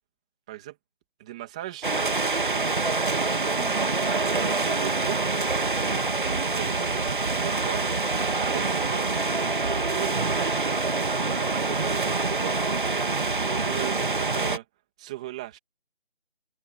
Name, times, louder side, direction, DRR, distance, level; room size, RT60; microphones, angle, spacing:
voice 1, 1.2-1.9 2.2-3.9 4.1-5.2 6.2-9.1 9.9-10.8 11.3-12.1 12.4-12.6 13.4-14.6 15.0-15.6, right 14 dB, 5° right, 2.2 m, -38 dB
sound 1, 1.8-14.6, right 3 dB, 50° right, 1.8 m, -26 dB
figure-of-eight pair, 175°, 33 cm